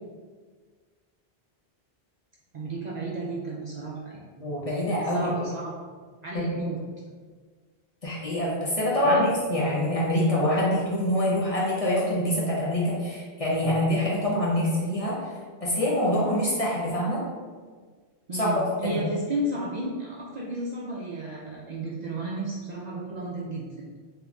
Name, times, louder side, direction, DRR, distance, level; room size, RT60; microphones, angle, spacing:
voice 1, 2.5-4.5 5.1-5.7 6.2-6.8 9.0-9.2 18.3-23.9, right 1 dB, 55° right, -4 dB, 0.5 m, -33 dB
voice 2, 4.4-5.5 6.3-6.4 8.0-17.2 18.3-18.5 18.8-19.0, left 1 dB, 40° left, -6 dB, 0.6 m, -25 dB
3.7 x 2.8 x 2.3 m, 1.5 s
omnidirectional pair, 1.1 m